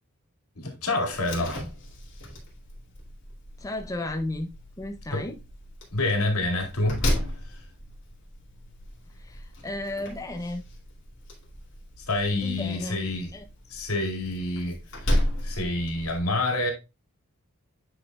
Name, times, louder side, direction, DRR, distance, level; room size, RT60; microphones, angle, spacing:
voice 1, 0.6-1.7 5.1-5.3 5.9-7.0 7.4-7.6 12.0-13.3 13.7-16.7, left 2 dB, 85° left, 2.4 m, -28 dB
Slam, 1.1-16.2, left 1 dB, 55° left, 2.6 m, -34 dB
voice 2, 3.6-4.5 4.8-5.4 9.2-10.6 12.4-13.1 13.3-13.4, left 1 dB, 15° left, 0.5 m, -33 dB
9.6 x 5.0 x 2.3 m
head